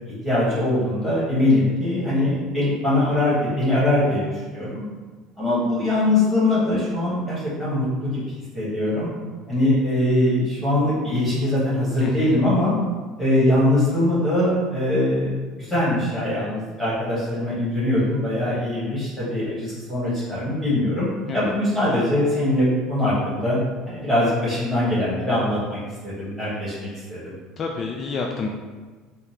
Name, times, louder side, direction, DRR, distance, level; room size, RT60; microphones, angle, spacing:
voice 1, 0.1-4.8 5.4-8.2 8.5-9.1 9.5-12.8 13.2-21.1 21.3-23.6 23.9-25.8 26.0-27.3, left 1 dB, 5° left, -10 dB, 1.4 m, -22 dB
voice 2, 12.0-12.4 21.3-21.5 27.6-28.5, left 4 dB, 30° left, 1 dB, 0.3 m, -28 dB
3.9 x 2.2 x 4.2 m, 1.4 s
cardioid pair, 140°, 0 cm